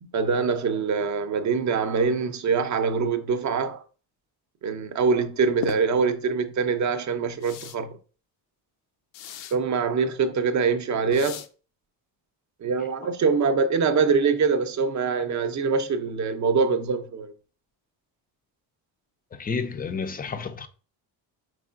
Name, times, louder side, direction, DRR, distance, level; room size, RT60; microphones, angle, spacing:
voice 1, 0.0-3.8 4.6-8.0 9.5-11.4 12.6-17.3, right 5 dB, 40° right, 0.6 m, -24 dB
sound 1, 5.6-5.8 7.4-7.8 9.1-9.6 11.1-11.5, left 10 dB, 80° left, 0.6 m, -36 dB
voice 2, 19.3-20.7, left 5 dB, 20° left, 0.4 m, -31 dB
4.8 x 3.7 x 2.4 m
supercardioid pair, 80°, 46 cm